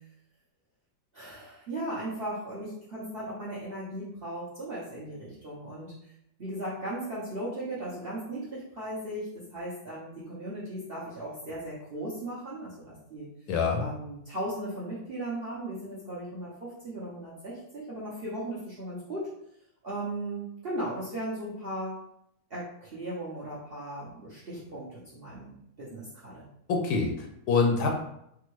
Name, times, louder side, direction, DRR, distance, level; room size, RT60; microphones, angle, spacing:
voice 1, 1.1-5.9 6.4-13.3 13.8-19.3 19.8-22.0 22.5-26.5, right 1 dB, 55° right, -8 dB, 0.6 m, -37 dB
voice 2, 13.5-13.9 26.7-27.9, left 4 dB, 70° left, 1 dB, 1.0 m, -25 dB
3.5 x 2.1 x 3.0 m, 0.77 s
omnidirectional pair, 1.8 m